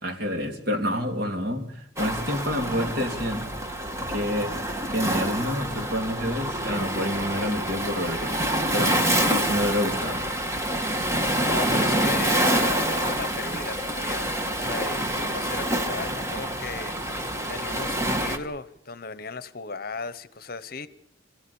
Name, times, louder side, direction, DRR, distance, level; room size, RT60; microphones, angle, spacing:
voice 1, 0.0-3.5 4.1-4.5 4.9-10.3, left 1 dB, 55° right, 3.3 m, -28 dB
Waves surf, 2.0-18.4, right 1 dB, 15° right, 1.6 m, -27 dB
voice 2, 11.4-16.9 17.5-20.9, left 4 dB, 55° left, 1.0 m, -36 dB
26.0 x 15.5 x 8.7 m
head